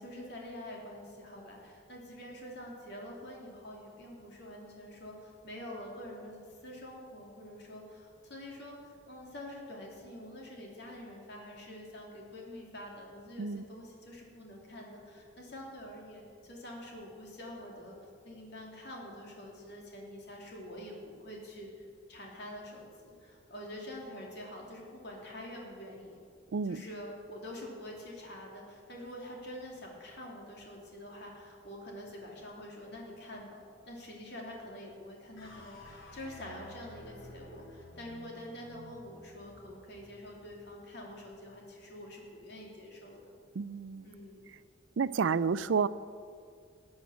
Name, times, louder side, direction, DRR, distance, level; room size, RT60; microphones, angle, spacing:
voice 1, 0.0-6.4 6.6-18.0 18.2-21.7 22.1-26.2 26.6-43.3 44.0-44.4, left 1 dB, 55° left, -1 dB, 2.8 m, -46 dB
sound 1, 35.4-41.7, left 1 dB, 80° left, 2.6 m, -53 dB
voice 2, 43.5-44.1 45.0-45.9, right 5 dB, 65° right, 16 dB, 0.4 m, -30 dB
14.5 x 8.7 x 7.1 m, 2.2 s
head